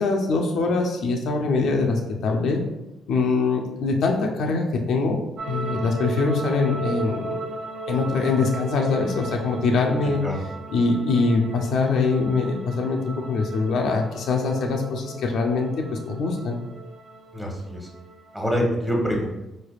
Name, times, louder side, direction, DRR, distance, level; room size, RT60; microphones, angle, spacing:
voice 1, 0.0-2.6 3.1-5.2 5.5-7.5 7.9-10.2 10.7-16.6, left 3 dB, 70° left, 2 dB, 0.5 m, -23 dB
sound 1, 5.4-18.6, right 3 dB, 75° right, 0.9 m, -36 dB
voice 2, 17.3-17.9 18.3-19.5, equal, 5° right, -1 dB, 1.0 m, -25 dB
4.1 x 3.3 x 2.3 m, 0.93 s
cardioid pair, 90°, 0 cm